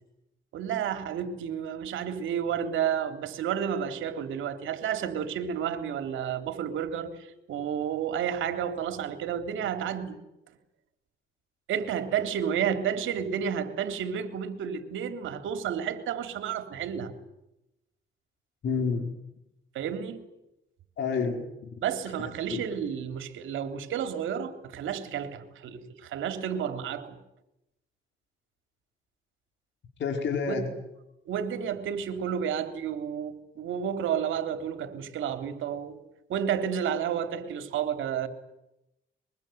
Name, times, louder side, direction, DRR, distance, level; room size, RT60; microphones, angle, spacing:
voice 1, 0.5-10.2 11.7-17.1 19.7-20.2 21.8-27.2 30.5-30.7 31.3-36.0 36.3-38.3, right 8 dB, 80° right, 3.6 m, -31 dB
voice 2, 18.6-19.1 21.0-21.7 22.2-22.6 30.0-30.7, left 5 dB, 65° left, 5.0 m, -29 dB
23.5 x 23.5 x 9.5 m
cardioid pair, 90°, 20 cm